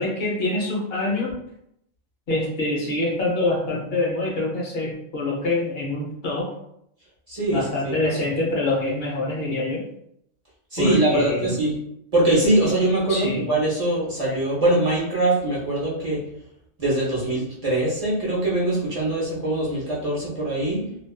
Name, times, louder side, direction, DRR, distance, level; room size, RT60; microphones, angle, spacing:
voice 1, 0.0-1.3 2.3-6.5 7.5-9.8 10.8-11.5 13.1-13.4, left 2 dB, 60° left, -3 dB, 0.8 m, -25 dB
voice 2, 7.3-8.0 10.7-11.8 12.1-16.2 16.8-20.8, right 1 dB, 35° right, -6 dB, 0.7 m, -22 dB
2.4 x 2.3 x 2.3 m, 0.77 s
omnidirectional pair, 1.3 m